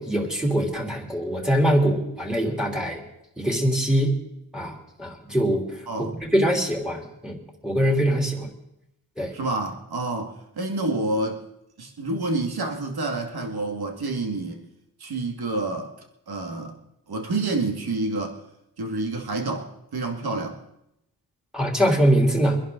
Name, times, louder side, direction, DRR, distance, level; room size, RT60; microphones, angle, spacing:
voice 1, 0.0-3.0 3.4-4.2 4.5-5.6 6.0-7.4 7.6-8.5 9.2-9.3 21.5-22.6, equal, ahead, 1 dB, 3.3 m, -23 dB
voice 2, 5.9-6.2 9.3-11.4 11.8-14.7 15.0-15.9 16.3-16.8 17.1-18.4 18.8-20.6, right 2 dB, 65° right, 3 dB, 2.3 m, -28 dB
24.5 x 11.0 x 4.0 m, 0.80 s
wide cardioid pair, 105°, 40 cm